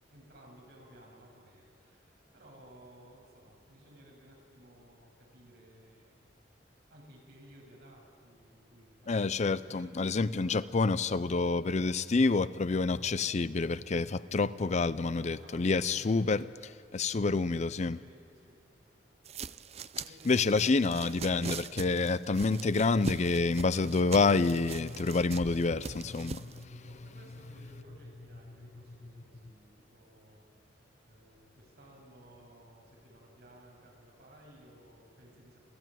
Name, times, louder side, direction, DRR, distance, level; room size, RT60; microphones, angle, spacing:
voice 1, 0.1-6.4 6.9-10.2 14.2-14.5 15.1-16.4 18.0-18.9 19.9-21.0 26.2-30.5 30.7-35.6, right 1 dB, 65° right, 7.5 m, -57 dB
voice 2, 9.1-16.4 16.9-18.0 20.2-26.5, left 3 dB, 40° left, 0.5 m, -28 dB
sound 1, 19.2-26.6, right 5 dB, 35° right, 0.5 m, -42 dB
27.5 x 15.5 x 9.2 m
head